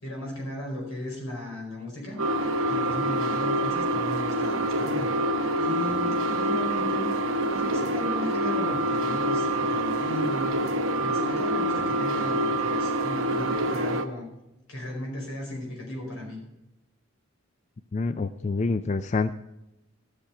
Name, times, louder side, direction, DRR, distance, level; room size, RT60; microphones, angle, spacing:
voice 1, 0.0-2.2 2.7-5.1 5.6-7.1 7.5-10.6 11.0-14.2 14.7-16.4, left 1 dB, 90° left, 1 dB, 5.1 m, -35 dB
sound 1, 2.2-14.1, right 1 dB, 75° right, 0.9 m, -26 dB
voice 2, 17.9-19.3, left 3 dB, 35° left, 11 dB, 0.4 m, -27 dB
13.0 x 6.8 x 5.8 m, 0.90 s
head